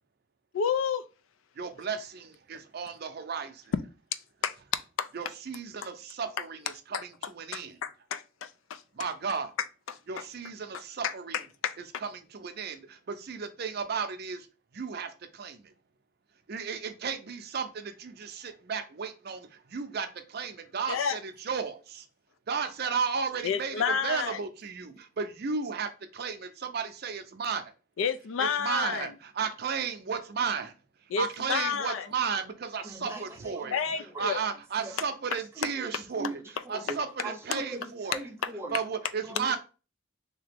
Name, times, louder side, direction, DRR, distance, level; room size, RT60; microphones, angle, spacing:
voice 1, 0.5-1.0 4.4-4.5 5.0-5.1 6.9-7.0 7.5-8.8 9.9-10.0 11.0-11.1 11.6-11.8 20.9-21.2 23.4-24.4 28.0-29.1 31.1-32.1 33.7-34.4, left 6 dB, 80° left, 0.4 m, -30 dB
voice 2, 1.6-3.7 5.1-7.8 8.9-9.5 10.1-11.4 11.8-14.5 14.7-15.7 16.5-22.1 22.5-27.7 28.4-30.7 31.2-36.4 36.7-38.2 38.7-39.6, right 6 dB, 50° right, 0.5 m, -34 dB
voice 3, 32.8-34.2 34.8-35.0 35.6-37.0 37.2-38.7 39.2-39.6, right 2 dB, 15° right, 0.7 m, -40 dB
3.3 x 2.9 x 3.4 m
head